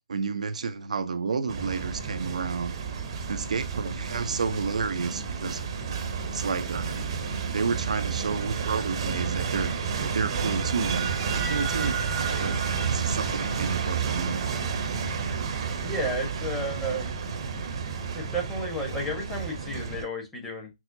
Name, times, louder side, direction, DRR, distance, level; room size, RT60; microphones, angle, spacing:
voice 1, 0.1-2.8 3.3-5.7 6.3-7.1 7.5-14.5, right 5 dB, 70° right, 0.6 m, -31 dB
sound 1, 1.5-20.0, right 6 dB, 45° right, 0.9 m, -31 dB
voice 2, 15.8-17.1 18.1-20.7, right 1 dB, 5° left, 1.2 m, -32 dB
6.0 x 2.0 x 2.6 m
hypercardioid pair, 140°, 4 cm